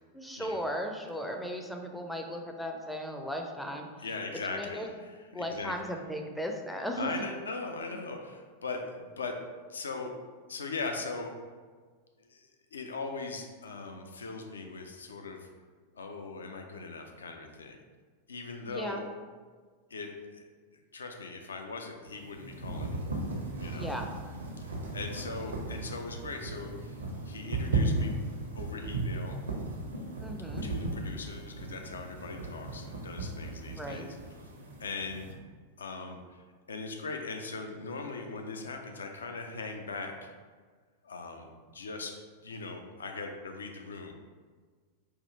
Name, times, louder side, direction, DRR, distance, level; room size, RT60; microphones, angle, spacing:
voice 1, 0.1-3.9 4.5-4.9 5.3-7.1 18.6-19.0 23.7-24.1 30.2-30.7 33.8-34.1, equal, ahead, 3 dB, 0.4 m, -36 dB
voice 2, 4.0-5.7 6.9-9.4 9.7-10.1 10.5-11.3 12.2-15.5 15.9-17.8 18.3-19.0 19.9-20.5 20.9-23.0 23.6-23.9 24.9-27.0 27.2-28.2 28.5-29.4 30.6-34.2 34.8-35.3 35.8-40.3 41.0-42.1 42.4-44.1, left 3 dB, 70° left, 3 dB, 0.4 m, -40 dB
sound 1, 22.1-35.3, right 2 dB, 75° right, 0.6 m, -36 dB
4.3 x 2.4 x 3.2 m, 1.5 s
figure-of-eight pair, 90°, 0 cm